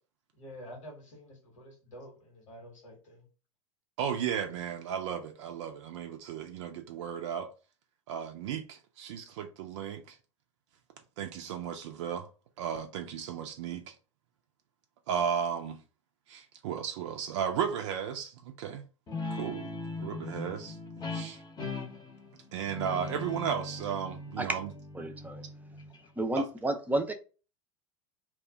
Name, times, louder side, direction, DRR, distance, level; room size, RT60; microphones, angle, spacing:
voice 1, 0.4-3.3, equal, 80° left, 1.2 m, -48 dB
voice 2, 4.0-7.5 8.1-10.2 11.2-12.3 12.6-13.9 15.1-15.8 16.3-18.8 19.3-19.7 20.0-20.8 21.1-21.4 22.5-24.7 26.4-26.5, right 8 dB, 70° right, 0.4 m, -34 dB
Guitar, 19.1-26.2, left 2 dB, 25° left, 0.8 m, -40 dB
voice 3, 24.9-25.5 26.2-27.1, right 2 dB, 10° right, 0.5 m, -31 dB
2.3 x 2.1 x 3.5 m
hypercardioid pair, 85°, 16 cm